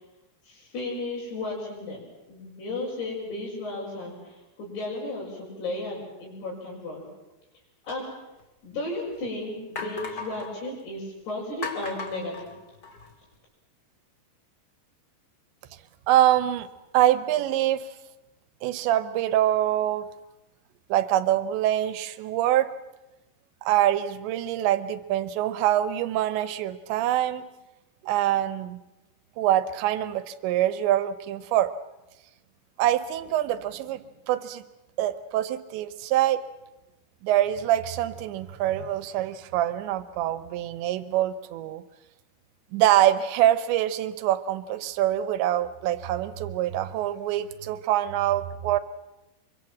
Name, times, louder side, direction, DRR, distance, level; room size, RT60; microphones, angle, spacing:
voice 1, 0.4-7.1 7.8-8.1 8.6-12.5, left 2 dB, 60° left, -7 dB, 7.5 m, -34 dB
sound 1, 8.4-8.5 9.1-9.2 9.7-10.5 11.6-13.1, left 3 dB, 30° left, 1.7 m, -36 dB
voice 2, 16.1-16.7 16.9-17.9 18.6-20.1 20.9-22.7 23.6-27.4 28.0-28.8 29.4-31.7 32.8-34.0 34.3-34.6 35.0-36.4 37.2-41.8 42.7-48.8, right 12 dB, 75° right, 13 dB, 3.1 m, -24 dB
25.0 x 24.0 x 7.5 m, 0.98 s
omnidirectional pair, 5.5 m